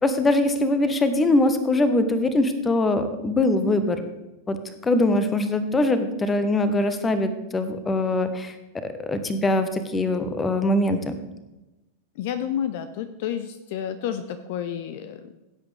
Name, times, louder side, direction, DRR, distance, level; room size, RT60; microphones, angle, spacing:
voice 1, 0.0-4.0 4.5-4.6 4.8-8.5 9.0-11.1, left 2 dB, 15° left, 10 dB, 1.1 m, -22 dB
voice 2, 12.2-15.3, left 9 dB, 50° left, 10 dB, 0.7 m, -30 dB
16.0 x 8.3 x 3.4 m, 1.0 s
figure-of-eight pair, 90°, 0 cm